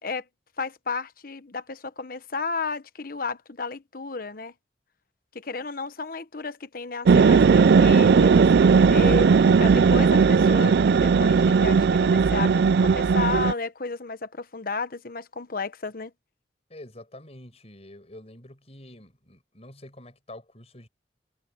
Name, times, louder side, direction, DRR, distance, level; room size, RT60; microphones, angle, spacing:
voice 1, 0.6-4.5 5.3-16.1, left 4 dB, 50° left, 1.1 m, -33 dB
sound 1, 7.1-13.5, right 5 dB, 60° right, 0.4 m, -17 dB
voice 2, 16.7-20.9, left 1 dB, 35° left, 6.0 m, -46 dB
head